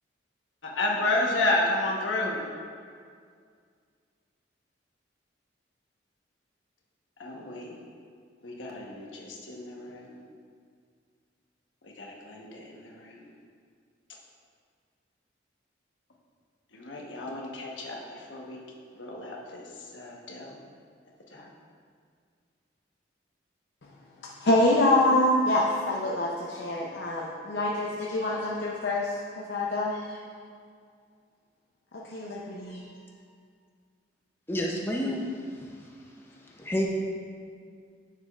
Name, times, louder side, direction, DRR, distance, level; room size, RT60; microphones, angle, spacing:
voice 1, 0.6-2.4 7.2-7.8 8.4-10.2 11.8-13.3 16.7-18.6 18.9-20.6 21.3-21.5, left 2 dB, 85° left, -2 dB, 1.1 m, -31 dB
voice 2, 24.2-30.2 31.9-32.8, left 1 dB, 65° left, -4 dB, 0.6 m, -26 dB
voice 3, 34.5-35.3 35.6-35.8 36.5-36.9, equal, 10° left, -2 dB, 0.6 m, -29 dB
9.9 x 6.6 x 2.4 m, 2.1 s
head